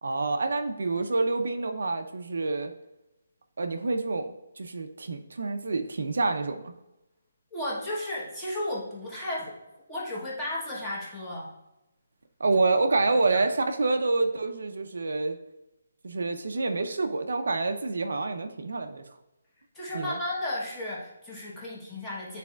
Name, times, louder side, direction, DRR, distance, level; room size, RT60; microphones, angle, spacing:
voice 1, 0.0-2.7 3.6-6.7 12.4-15.4 16.0-19.2 19.9-20.2, right 3 dB, 70° right, 6 dB, 0.6 m, -27 dB
voice 2, 7.5-9.6 9.9-11.5 13.2-13.4 19.7-22.4, left 1 dB, 5° left, -7 dB, 1.1 m, -34 dB
9.3 x 4.2 x 2.4 m, 0.94 s
hypercardioid pair, 175°, 0 cm